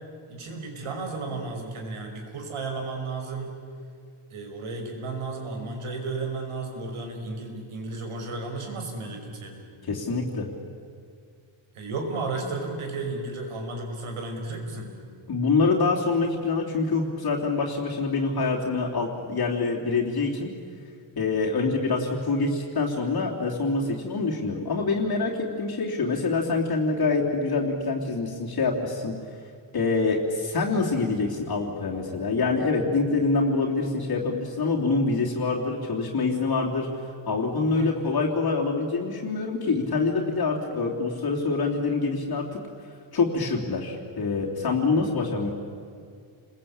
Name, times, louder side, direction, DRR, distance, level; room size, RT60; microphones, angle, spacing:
voice 1, 0.3-3.6 4.3-9.7 11.7-15.0 37.7-37.9, right 3 dB, 80° right, 3 dB, 5.6 m, -33 dB
voice 2, 9.9-10.5 15.3-20.5 21.2-29.1 29.7-36.9 37.2-42.6 43.1-45.5, left 3 dB, 45° left, -2 dB, 3.1 m, -25 dB
30.0 x 21.5 x 8.8 m, 2.2 s
wide cardioid pair, 160°, 49 cm